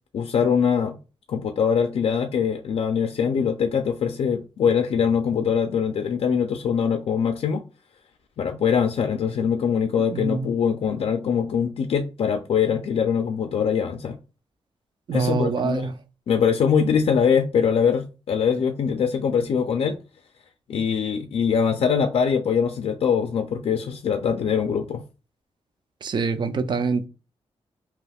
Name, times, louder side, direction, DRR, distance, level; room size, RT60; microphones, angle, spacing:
voice 1, 0.1-1.0 1.3-7.6 8.4-14.2 15.1-15.9 16.3-20.0 20.7-25.0, left 7 dB, 65° left, 0.4 m, -23 dB
voice 2, 10.1-10.5 15.1-15.9 26.0-27.1, right 4 dB, 45° right, 0.4 m, -25 dB
2.8 x 2.3 x 3.3 m
wide cardioid pair, 165°, 11 cm